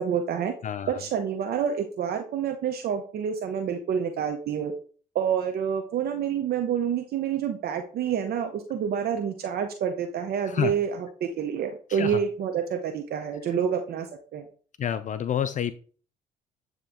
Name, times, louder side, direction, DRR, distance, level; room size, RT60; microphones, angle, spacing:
voice 1, 0.0-0.5 0.9-4.7 5.1-14.1 14.3-14.4, right 8 dB, 60° right, 0.7 m, -28 dB
voice 2, 0.6-1.0 10.4-10.7 11.9-12.2 14.8-15.7, left 9 dB, 45° left, 0.4 m, -28 dB
8.8 x 3.0 x 3.7 m
hypercardioid pair, 60°, 18 cm